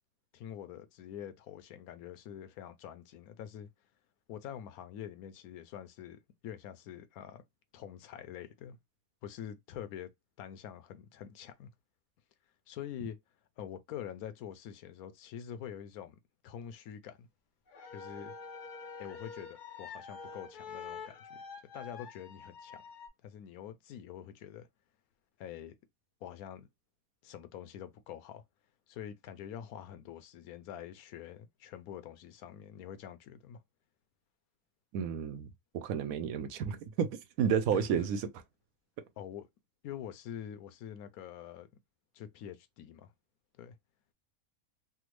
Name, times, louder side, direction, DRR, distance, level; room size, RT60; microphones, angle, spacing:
voice 1, 0.3-3.7 4.3-7.4 7.7-8.8 9.2-10.1 10.4-11.7 12.7-13.2 13.6-17.3 17.9-18.3 19.0-21.4 21.7-22.8 23.2-24.7 25.4-25.7 26.2-26.7 27.2-28.4 28.9-33.6 37.7-38.0 39.2-39.5 39.8-41.7 42.1-43.1 43.6-43.7, left 9 dB, 90° left, 1.1 m, -45 dB
sound 1, 17.7-23.1, left 5 dB, 50° left, 0.6 m, -46 dB
voice 2, 34.9-38.2, right 8 dB, 80° right, 1.0 m, -31 dB
3.4 x 2.1 x 3.0 m
omnidirectional pair, 1.5 m